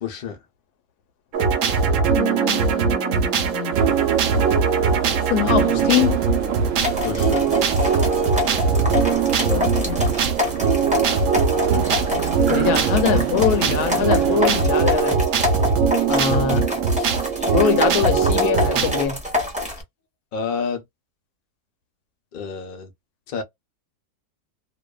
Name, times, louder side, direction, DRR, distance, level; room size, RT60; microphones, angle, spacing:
voice 1, 0.0-0.4 7.0-7.5 20.3-20.8 22.3-22.9 23.3-23.4, left 6 dB, 55° left, 0.5 m, -29 dB
sound 1, 1.3-19.1, right 6 dB, 65° right, 0.9 m, -21 dB
voice 2, 2.2-3.8 5.3-6.2 9.4-10.1 12.5-15.2 16.1-17.1 17.5-19.2, left 9 dB, 80° left, 1.1 m, -24 dB
sound 2, 3.7-14.6, right 7 dB, 80° right, 0.5 m, -30 dB
sound 3, 6.8-19.8, left 3 dB, 5° right, 0.7 m, -27 dB
2.6 x 2.3 x 2.2 m
omnidirectional pair, 1.7 m